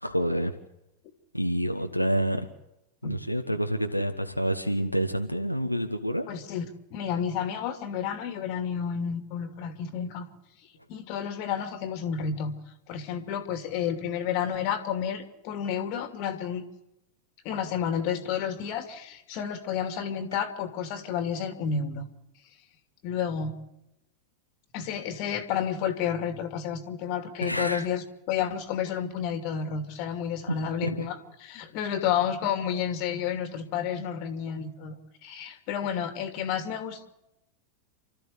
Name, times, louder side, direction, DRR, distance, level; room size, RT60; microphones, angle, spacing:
voice 1, 0.0-0.5 1.3-2.5 3.0-6.2 27.4-27.9 30.8-31.1, equal, 90° left, 4 dB, 1.3 m, -28 dB
voice 2, 6.3-10.3 10.9-12.5 12.9-16.6 17.4-22.1 23.0-23.5 24.7-34.9 35.2-37.1, left 8 dB, 45° left, 8 dB, 2.7 m, -31 dB
29.0 x 13.5 x 8.3 m, 0.90 s
figure-of-eight pair, 90°, 0 cm